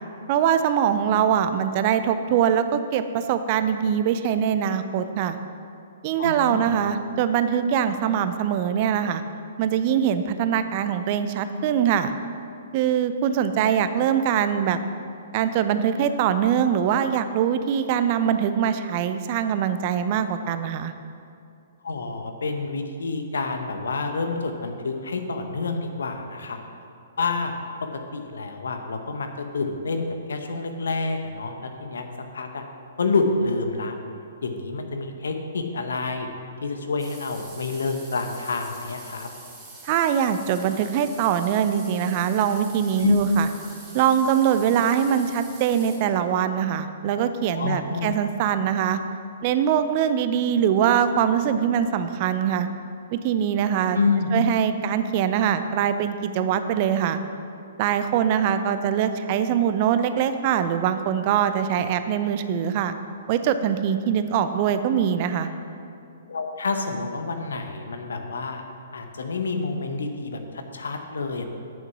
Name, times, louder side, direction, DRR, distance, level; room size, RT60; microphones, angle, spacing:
voice 1, 0.3-5.4 6.0-9.2 9.6-12.1 12.7-14.8 15.3-20.9 39.8-43.5 43.9-49.0 49.4-52.7 53.1-54.0 54.3-57.2 57.8-62.9 63.3-65.5, right 8 dB, 40° right, 10 dB, 0.5 m, -23 dB
voice 2, 6.2-6.8 21.8-26.6 27.2-27.5 27.9-32.1 32.3-32.6 33.0-34.0 34.4-36.3 36.6-39.3 43.0-43.2 47.5-48.1 53.9-54.3 66.3-68.6 68.9-71.5, left 4 dB, 70° left, 5 dB, 1.0 m, -28 dB
sound 1, 37.0-46.0, right 2 dB, 15° right, 2.2 m, -45 dB
8.7 x 6.7 x 6.0 m, 2.5 s
figure-of-eight pair, 120°, 0 cm